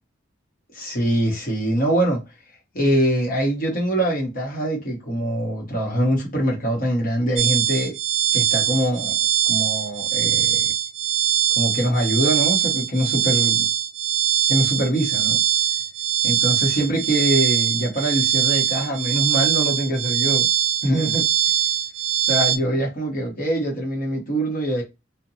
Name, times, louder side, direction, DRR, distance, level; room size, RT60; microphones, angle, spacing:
voice 1, 0.7-2.2 2.7-8.0 8.3-9.2 9.5-10.7 11.6-13.7 14.5-15.4 16.2-20.5 20.8-21.2 22.3-24.8, right 1 dB, 45° left, 0.9 m, -23 dB
sound 1, 7.4-22.6, right 9 dB, 75° right, 0.4 m, -22 dB
2.8 x 2.2 x 2.5 m
head